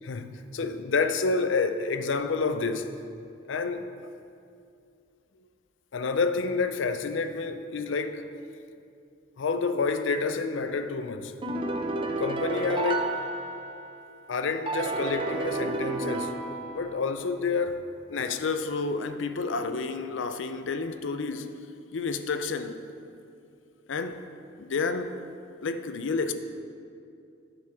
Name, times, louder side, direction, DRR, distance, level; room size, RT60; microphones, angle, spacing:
voice 1, 0.0-2.9 3.5-4.1 5.9-8.3 9.4-11.3 12.2-13.2 14.3-16.4 16.7-21.6 21.9-22.7 23.9-24.2 24.6-25.2 25.6-26.3, left 4 dB, 65° left, 0.5 m, -29 dB
sound 1, 11.4-14.0 14.7-17.1, right 2 dB, 25° right, 0.7 m, -31 dB
9.3 x 7.0 x 4.7 m
head